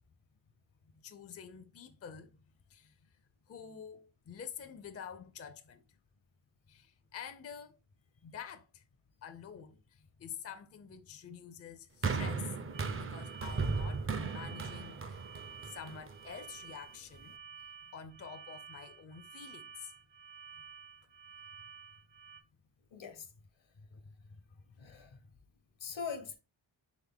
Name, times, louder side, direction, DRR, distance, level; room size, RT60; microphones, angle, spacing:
voice 1, 0.8-2.4 2.7-3.0 3.5-5.8 6.7-7.8 8.2-8.8 9.2-12.5 12.9-15.3 15.6-17.4 17.9-19.9 23.9-24.4, left 7 dB, 35° left, 0.5 m, -48 dB
sound 1, 12.0-16.4 17.2-17.3, right 4 dB, 30° right, 0.4 m, -36 dB
sound 2, 12.7-22.4, right 7 dB, 65° right, 0.7 m, -52 dB
voice 2, 22.9-23.3 24.8-25.2 25.8-26.4, left 6 dB, 75° left, 1.0 m, -42 dB
3.8 x 3.7 x 3.5 m
wide cardioid pair, 85°, 46 cm